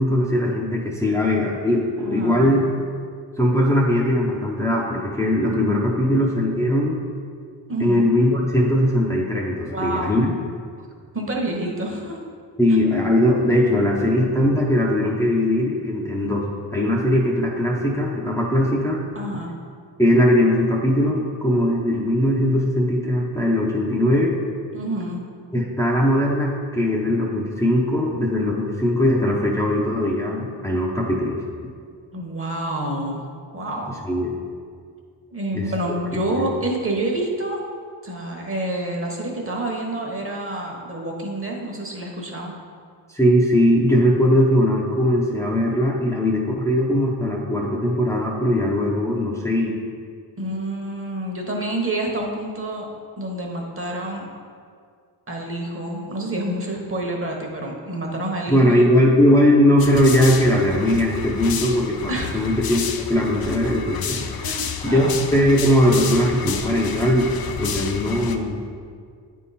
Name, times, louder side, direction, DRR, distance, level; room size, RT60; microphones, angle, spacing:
voice 1, 0.0-2.7 3.4-7.0 7.8-10.3 12.6-19.0 20.0-24.4 25.5-31.4 34.1-34.3 35.5-35.7 36.4-36.5 43.1-49.8 58.5-62.8 63.1-64.3 64.8-67.3 67.6-68.7, left 1 dB, 5° left, -4 dB, 0.7 m, -20 dB
voice 2, 2.0-2.7 7.7-8.1 9.7-10.4 11.1-12.2 19.1-19.6 24.7-25.2 32.1-33.2 33.5-34.0 35.3-37.6 38.0-42.5 50.4-52.9 53.2-54.3 55.3-58.9 62.1-62.4 64.4-65.1, right 1 dB, 30° right, 0 dB, 1.2 m, -28 dB
sound 1, 59.8-68.4, left 7 dB, 55° left, 0.6 m, -30 dB
8.7 x 3.7 x 4.2 m, 2.1 s
cardioid pair, 90°, 43 cm